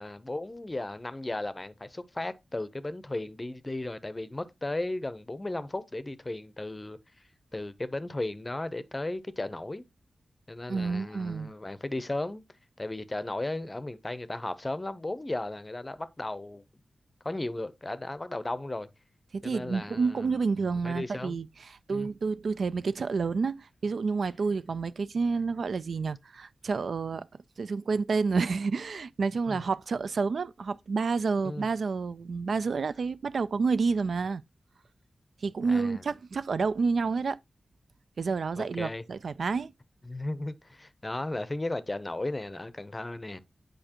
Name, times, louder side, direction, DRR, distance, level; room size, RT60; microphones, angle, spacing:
voice 1, 0.0-7.0 7.5-9.8 10.5-12.4 12.8-16.6 17.2-18.9 19.4-21.4 21.9-22.1 29.5-29.6 31.4-31.7 35.6-36.0 38.6-39.0 40.0-43.4, left 2 dB, 20° left, 0.6 m, -35 dB
voice 2, 10.7-11.5 19.3-27.3 27.6-34.4 35.4-37.4 38.2-39.7, right 4 dB, 70° right, 0.3 m, -29 dB
8.8 x 5.1 x 2.9 m
wide cardioid pair, 100°, 0 cm